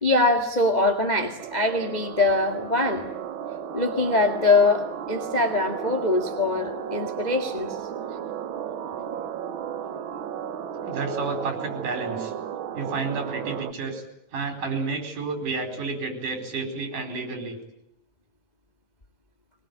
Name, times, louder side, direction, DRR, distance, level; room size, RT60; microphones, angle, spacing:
voice 1, 0.0-3.1 3.7-7.7, left 2 dB, 15° left, 4 dB, 1.7 m, -23 dB
sound 1, 1.4-13.7, right 9 dB, 60° right, 1.4 m, -34 dB
voice 2, 10.8-12.3 12.7-14.0 14.3-17.6, right 4 dB, 85° right, 4 dB, 6.0 m, -30 dB
22.5 x 22.0 x 9.8 m, 0.79 s
omnidirectional pair, 3.5 m